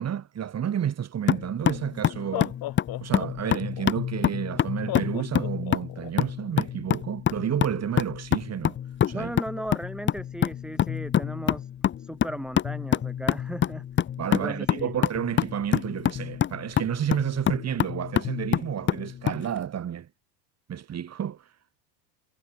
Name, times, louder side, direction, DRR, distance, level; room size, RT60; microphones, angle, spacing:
voice 1, 0.0-2.6 3.0-8.8 9.1-9.3 14.2-20.1 20.7-21.5, right 9 dB, 30° right, 5.4 m, -30 dB
sound 1, 1.3-19.4, left 10 dB, 25° left, 0.8 m, -27 dB
Laughter, 1.4-1.5 2.2-3.9 4.9-6.1, left 16 dB, 45° left, 2.5 m, -34 dB
voice 2, 9.1-11.7 12.0-13.9 14.3-14.9, equal, ahead, 2.7 m, -36 dB
supercardioid pair, 120°, 49 cm